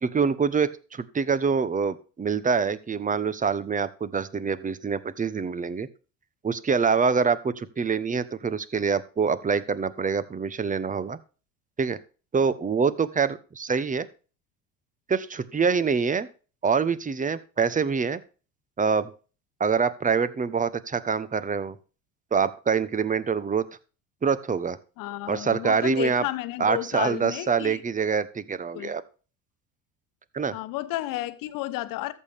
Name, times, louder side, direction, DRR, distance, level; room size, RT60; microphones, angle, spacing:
voice 1, 0.0-5.9 6.4-11.2 11.8-12.0 12.3-14.1 15.1-16.3 16.6-18.2 18.8-19.1 19.6-21.8 22.3-23.6 24.2-24.8 25.3-26.2 26.6-29.0 30.3-30.5, right 5 dB, 20° right, 0.9 m, -25 dB
voice 2, 25.0-27.8 28.7-28.9 30.5-32.1, left 16 dB, 60° left, 1.1 m, -32 dB
13.5 x 6.6 x 3.4 m
hypercardioid pair, 70°, 38 cm